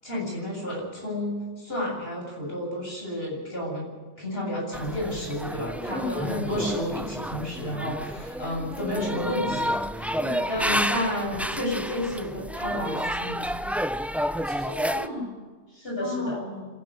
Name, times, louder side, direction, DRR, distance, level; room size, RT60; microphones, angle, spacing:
voice 1, 0.0-3.9 4.2-10.2 10.5-13.7 15.7-16.4, left 1 dB, 60° left, -2 dB, 8.3 m, -31 dB
sound 1, 4.7-15.1, equal, ahead, 0.5 m, -30 dB
voice 2, 5.9-6.2 10.2-10.5 14.4-15.4 15.9-16.7, left 2 dB, 30° left, -2 dB, 5.7 m, -34 dB
26.0 x 12.0 x 9.6 m, 1.4 s
omnidirectional pair, 1.1 m